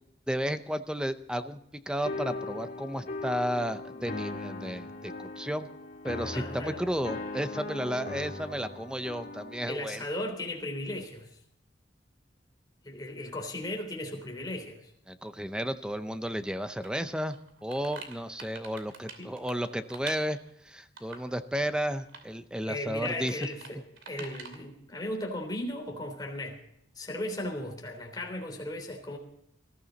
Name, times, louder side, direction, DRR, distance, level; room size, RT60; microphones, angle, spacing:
voice 1, 0.3-1.6 1.9-5.7 6.0-10.1 15.1-17.4 17.6-20.4 20.6-23.5, equal, 5° right, 10 dB, 0.6 m, -33 dB
sound 1, 2.0-9.8, left 2 dB, 45° left, 1.8 m, -39 dB
voice 2, 6.3-6.8 9.7-11.3 12.8-14.9 19.2-19.3 22.7-23.8 24.1-26.6 27.0-29.2, left 1 dB, 20° left, 2 dB, 3.4 m, -36 dB
sound 2, 16.8-16.9 17.3-20.5 21.0-21.4 21.8-22.3 22.6-22.7 23.1-23.7 24.0-24.6, right 5 dB, 85° right, 2.7 m, -45 dB
20.0 x 14.0 x 4.0 m, 0.75 s
head